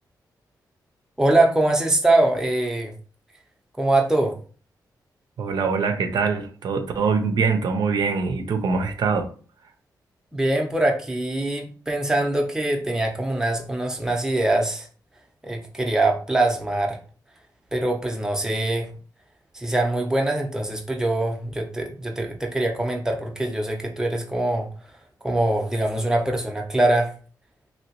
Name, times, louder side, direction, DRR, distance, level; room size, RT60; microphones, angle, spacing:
voice 1, 1.2-2.9 3.8-4.4 10.3-14.9 15.4-17.0 17.7-18.9 19.5-24.7 25.2-27.1, right 2 dB, 10° right, 0.7 m, -23 dB
voice 2, 5.4-9.3, right 5 dB, 70° right, 0.5 m, -23 dB
2.8 x 2.8 x 2.9 m
cardioid pair, 80°, 7 cm